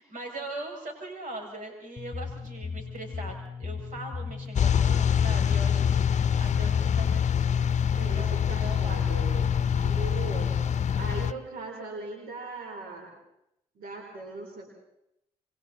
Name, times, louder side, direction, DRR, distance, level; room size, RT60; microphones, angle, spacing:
voice 1, 0.0-7.3 8.0-10.0, right 2 dB, 60° right, 1 dB, 7.0 m, -41 dB
sound 1, 2.0-7.3, left 4 dB, 25° left, 1.5 m, -37 dB
sound 2, 4.6-11.3, left 8 dB, 50° left, 0.7 m, -25 dB
voice 2, 8.0-9.5 9.8-10.5 11.0-13.1 13.7-14.7, right 3 dB, 80° right, 2 dB, 4.2 m, -39 dB
28.0 x 23.0 x 4.3 m, 0.82 s
supercardioid pair, 50°, 15 cm